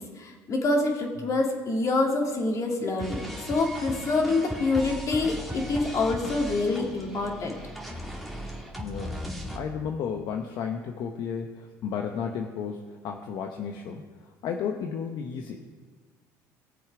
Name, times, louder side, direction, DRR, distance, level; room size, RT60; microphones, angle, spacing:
voice 1, 0.0-3.2 3.5-7.6, left 3 dB, 40° left, 0 dB, 2.6 m, -26 dB
sound 1, 3.0-9.6, equal, ahead, 2.2 m, -37 dB
voice 2, 8.8-9.2 9.5-14.0 14.4-15.7, left 7 dB, 65° left, 3 dB, 0.9 m, -33 dB
18.5 x 7.1 x 4.9 m, 1.4 s
supercardioid pair, 95°, 8 cm